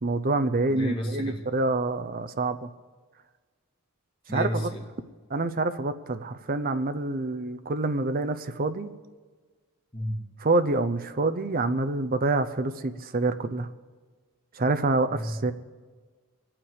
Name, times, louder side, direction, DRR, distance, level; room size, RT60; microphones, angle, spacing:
voice 1, 0.0-2.7 4.3-4.7 5.3-8.9 10.4-13.7 14.5-15.5, right 2 dB, 40° right, 11 dB, 0.7 m, -27 dB
voice 2, 0.7-1.4 4.3-4.9 9.9-10.2 15.1-15.5, equal, 25° left, -2 dB, 2.5 m, -32 dB
23.0 x 9.0 x 4.9 m, 1.5 s
head